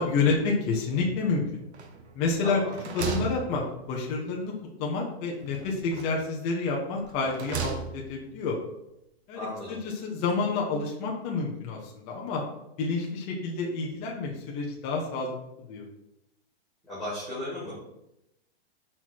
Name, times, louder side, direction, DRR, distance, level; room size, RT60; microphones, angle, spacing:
voice 1, 0.0-1.4 2.2-2.6 2.9-4.5 4.8-8.6 9.3-12.4 12.8-15.4 15.7-15.8, left 4 dB, 20° left, -1 dB, 0.7 m, -29 dB
sound 1, 1.7-2.2 2.6-4.2 5.4-6.3 7.0-8.2, right 6 dB, 80° right, 1.3 m, -36 dB
voice 2, 2.4-2.8 9.3-9.8 16.9-17.7, left 1 dB, ahead, -11 dB, 2.3 m, -35 dB
6.2 x 4.4 x 4.5 m, 0.85 s
hypercardioid pair, 165°, 32 cm